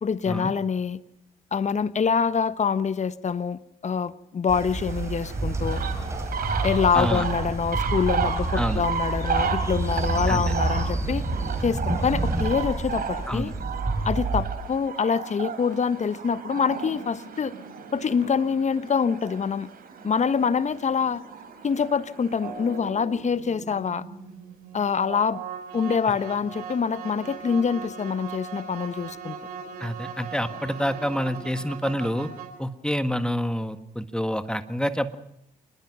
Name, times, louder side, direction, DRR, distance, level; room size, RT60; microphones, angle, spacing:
voice 1, 0.0-1.0 1.5-5.8 6.6-11.3 11.6-13.5 14.0-17.5 17.9-19.7 20.0-21.2 21.6-24.0 24.7-25.4 25.7-29.4, left 6 dB, 40° left, 1.2 m, -25 dB
Train, 4.5-14.5, right 2 dB, 15° right, 5.2 m, -28 dB
sound 1, 4.5-22.8, right 6 dB, 55° right, 3.9 m, -34 dB
voice 2, 6.9-7.2 8.5-8.8 10.3-10.4 13.3-13.5 29.8-32.3 32.6-35.2, equal, 5° left, 1.7 m, -27 dB
sound 2, 22.4-32.5, right 6 dB, 80° right, 5.1 m, -39 dB
27.5 x 20.0 x 6.2 m
hypercardioid pair, 45°, 19 cm